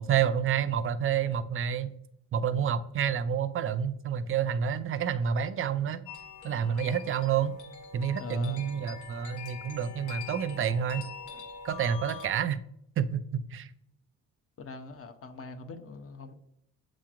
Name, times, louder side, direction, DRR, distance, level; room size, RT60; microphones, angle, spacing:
voice 1, 0.0-1.9 2.3-6.1 6.4-7.6 7.9-11.1 11.6-12.6 13.0-13.7, right 8 dB, 45° right, 14 dB, 0.4 m, -29 dB
sound 1, 6.1-12.3, left 6 dB, 75° left, 1.0 m, -44 dB
voice 2, 8.2-8.6 11.3-11.5 14.6-16.3, left 4 dB, 50° left, 7 dB, 0.7 m, -42 dB
7.4 x 2.9 x 2.4 m, 0.75 s
cardioid pair, 90°, 30 cm